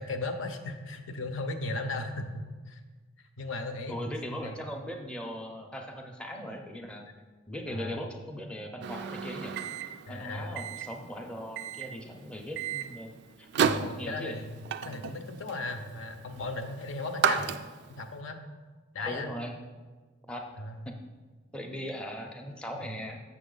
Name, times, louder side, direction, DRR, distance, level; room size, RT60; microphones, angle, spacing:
voice 1, 0.0-2.8 3.2-4.0 4.3-4.6 7.7-8.0 10.1-10.6 13.6-17.5 18.0-18.4 18.9-19.3 20.6-20.8 22.9-23.0, left 2 dB, 70° left, 7 dB, 0.7 m, -36 dB
voice 2, 3.9-7.1 7.5-9.6 10.1-13.1 13.4-14.4 19.0-19.5 20.3-20.5 20.9-21.0 21.5-23.2, equal, 5° left, 1 dB, 0.6 m, -39 dB
Microwave oven, 8.8-18.1, right 7 dB, 55° right, 0.3 m, -34 dB
6.9 x 6.2 x 3.9 m, 1.4 s
head